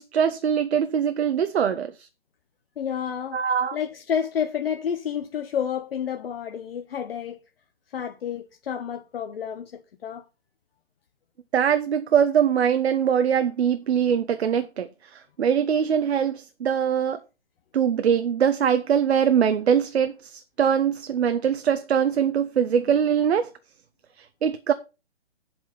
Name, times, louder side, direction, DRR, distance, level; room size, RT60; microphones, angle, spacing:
voice 1, 0.0-2.1 3.3-3.8 11.5-17.2 17.7-23.5 24.2-24.7, right 8 dB, 70° right, 0.8 m, -22 dB
voice 2, 2.8-3.4 3.7-7.4 7.9-10.2, left 8 dB, 60° left, 0.9 m, -30 dB
7.8 x 4.3 x 7.0 m
hypercardioid pair, 150°, 33 cm